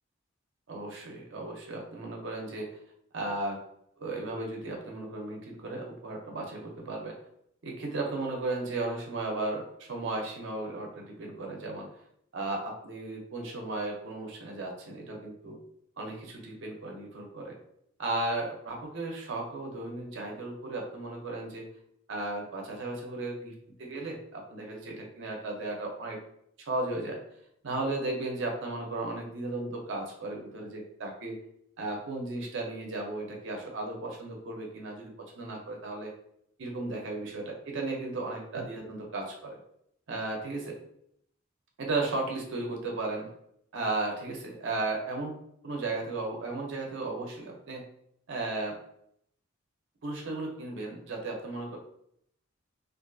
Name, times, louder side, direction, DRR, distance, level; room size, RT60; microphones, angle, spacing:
voice 1, 0.7-2.7 3.1-3.6 4.0-7.1 7.6-11.9 12.3-15.6 16.0-17.6 18.0-21.7 22.1-23.5 23.8-26.2 26.6-27.2 27.6-31.4 31.8-35.1 35.4-36.1 36.6-39.6 40.1-40.8 41.8-43.3 43.7-45.3 45.6-47.8 48.3-48.8 50.0-51.8, right 2 dB, 65° right, 0 dB, 0.5 m, -35 dB
2.4 x 2.4 x 2.3 m, 0.71 s
head